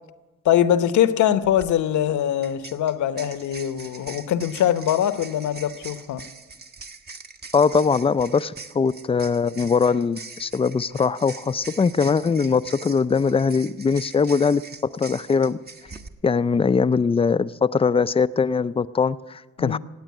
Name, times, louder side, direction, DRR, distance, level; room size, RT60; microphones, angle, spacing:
voice 1, 0.4-6.3 19.6-19.8, left 10 dB, 75° left, 0.9 m, -22 dB
sound 1, 1.4-1.7 2.4-16.1, right 4 dB, 35° right, 1.1 m, -42 dB
voice 2, 7.5-14.6 14.9-15.6 16.2-19.8, left 5 dB, 20° left, 0.4 m, -21 dB
16.5 x 8.9 x 9.5 m
cardioid pair, 90°, 30 cm